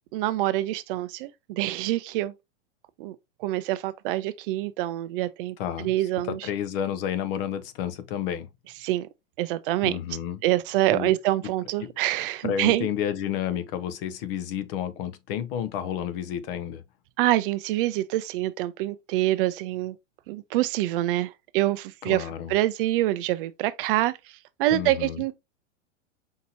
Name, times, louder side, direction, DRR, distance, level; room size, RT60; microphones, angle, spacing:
voice 1, 0.1-2.3 3.0-6.4 8.8-9.1 9.4-10.0 10.4-12.9 17.2-20.0 20.3-24.1 24.6-25.3, right 16 dB, 45° right, 0.5 m, -26 dB
voice 2, 5.6-5.9 6.2-8.5 9.8-10.4 10.9-11.1 11.8-11.9 12.4-16.8 22.0-22.5 24.7-25.2, left 9 dB, 50° left, 0.8 m, -31 dB
5.6 x 2.9 x 2.7 m
hypercardioid pair, 125°, 38 cm